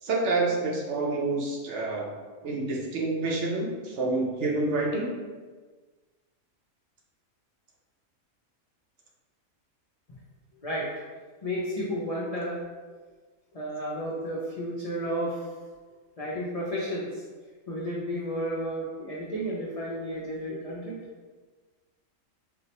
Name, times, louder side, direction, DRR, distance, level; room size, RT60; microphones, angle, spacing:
voice 1, 0.0-2.1 2.4-5.1, right 3 dB, 65° right, -2 dB, 0.9 m, -28 dB
voice 2, 10.6-10.9 11.4-12.6 13.5-15.5 16.2-17.2 17.7-21.0, equal, 55° left, -7 dB, 0.4 m, -32 dB
4.5 x 2.1 x 2.8 m, 1.4 s
omnidirectional pair, 1.4 m